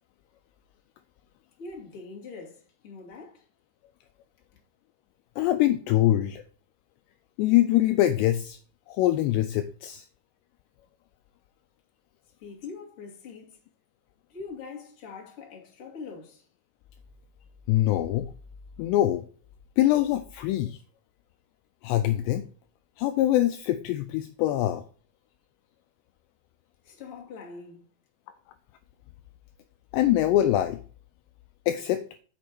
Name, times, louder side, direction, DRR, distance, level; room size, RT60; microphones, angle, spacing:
voice 1, 1.6-3.4 4.5-4.6 12.4-13.6 14.3-16.5 26.8-27.9, left 4 dB, 40° left, 2.5 m, -43 dB
voice 2, 5.4-6.4 7.4-8.6 8.9-10.0 17.7-18.3 18.8-19.2 19.8-20.8 21.8-22.4 23.0-24.8 29.9-30.8 31.7-32.0, left 13 dB, 80° left, 2.6 m, -23 dB
6.6 x 6.2 x 6.0 m
omnidirectional pair, 5.2 m